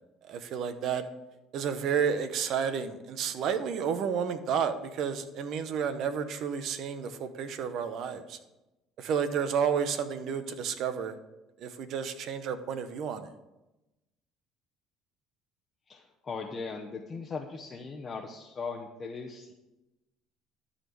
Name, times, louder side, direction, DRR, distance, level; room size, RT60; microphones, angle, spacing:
voice 1, 0.2-1.1 1.5-8.4 9.0-11.2 11.6-13.3, right 7 dB, 60° right, 10 dB, 1.0 m, -31 dB
voice 2, 15.9-19.5, left 4 dB, 30° left, 0 dB, 1.0 m, -39 dB
12.5 x 4.2 x 6.9 m, 0.99 s
supercardioid pair, 95°, 0 cm